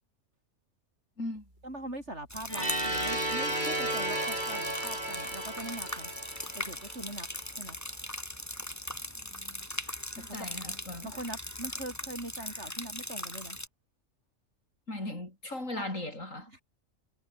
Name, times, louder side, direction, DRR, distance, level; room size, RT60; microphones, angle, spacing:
voice 1, 1.6-6.1 6.5-7.3 7.6-7.8 10.2-13.6 15.8-15.9 16.5-16.6, right 1 dB, 60° right, 8.3 m, -42 dB
sound 1, 2.3-13.7, left 1 dB, 10° left, 4.3 m, -40 dB
sound 2, 2.5-7.3, right 1 dB, 35° right, 7.3 m, -33 dB
voice 2, 9.3-9.6 10.2-11.1 14.9-16.5, left 1 dB, 80° left, 7.6 m, -38 dB
omnidirectional pair, 1.3 m